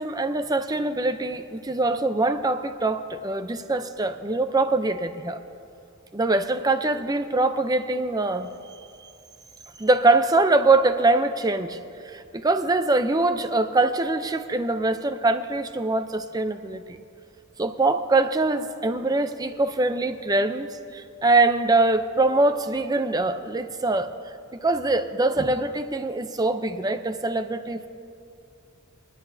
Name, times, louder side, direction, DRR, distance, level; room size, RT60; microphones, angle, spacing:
voice 1, 0.0-5.4 6.1-8.5 9.8-11.8 12.0-17.0 17.6-24.1 24.6-27.9, right 2 dB, 20° right, 9 dB, 0.5 m, -23 dB
23.5 x 10.5 x 2.7 m, 2.5 s
head